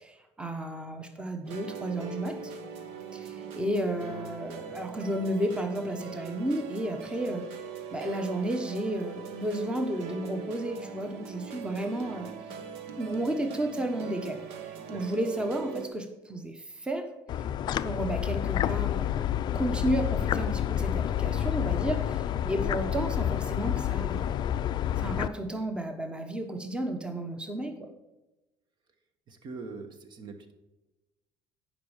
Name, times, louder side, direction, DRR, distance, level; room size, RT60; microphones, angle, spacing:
voice 1, 0.0-2.5 3.1-7.5 7.9-12.3 13.0-17.1 17.8-24.4 25.0-27.7, right 1 dB, 10° right, 5 dB, 1.0 m, -32 dB
sound 1, 1.4-15.9, right 6 dB, 80° right, 1.1 m, -41 dB
sound 2, 17.3-25.3, left 11 dB, 45° left, 0.4 m, -29 dB
voice 2, 29.3-30.5, right 4 dB, 50° right, 8 dB, 1.2 m, -43 dB
10.5 x 5.3 x 5.0 m, 1.0 s
cardioid pair, 110°, 10 cm